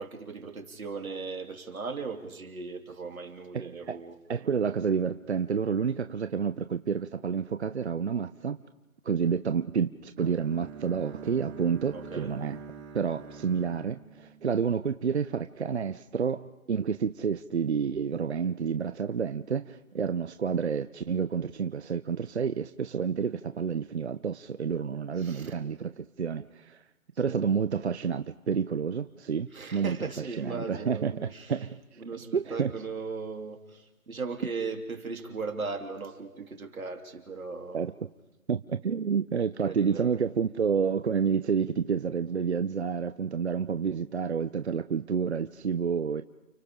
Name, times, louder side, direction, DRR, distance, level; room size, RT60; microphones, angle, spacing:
voice 1, 0.0-4.2 11.9-12.3 25.2-25.6 27.2-27.4 29.5-31.7 32.0-37.8 39.6-40.3, right 4 dB, 85° right, 3 dB, 3.4 m, -38 dB
voice 2, 3.5-4.0 4.3-8.6 9.0-12.6 12.9-26.8 27.2-30.0 30.4-32.0 32.3-32.7 37.7-37.9 38.5-46.2, right 6 dB, 55° right, 10 dB, 0.6 m, -29 dB
Bowed string instrument, 10.2-15.1, right 6 dB, 30° right, 3.6 m, -45 dB
29.5 x 25.0 x 3.8 m, 1.0 s
hypercardioid pair, 170°, 41 cm